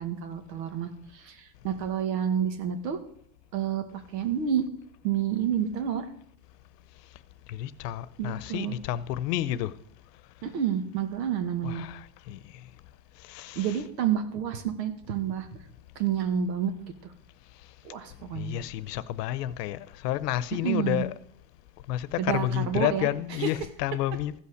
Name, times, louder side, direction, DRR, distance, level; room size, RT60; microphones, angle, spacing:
voice 1, 0.0-3.0 3.5-4.6 5.0-6.1 8.2-8.8 10.4-11.9 13.6-15.5 16.0-16.7 17.0-17.1 17.8-18.5 20.6-21.0 22.2-23.1 23.4-23.5, right 9 dB, 90° right, 2.0 m, -29 dB
voice 2, 7.5-9.7 11.6-12.4 13.3-13.8 18.3-21.1 21.9-24.4, left 13 dB, 75° left, 0.8 m, -30 dB
15.0 x 5.7 x 6.5 m
supercardioid pair, 150°, 49 cm